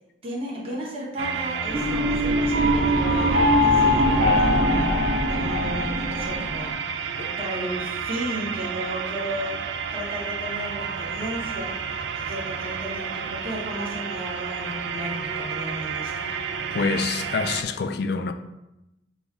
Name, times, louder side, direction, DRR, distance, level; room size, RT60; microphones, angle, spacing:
voice 1, 0.2-6.8 7.1-16.5, equal, 30° right, 0.9 m, -34 dB
sound 1, 1.2-17.6, right 6 dB, 75° right, 0.3 m, -31 dB
sound 2, 1.7-6.7, left 1 dB, 55° right, 1.2 m, -22 dB
voice 2, 16.7-18.3, left 4 dB, 55° left, 0.3 m, -26 dB
5.9 x 2.4 x 3.5 m
head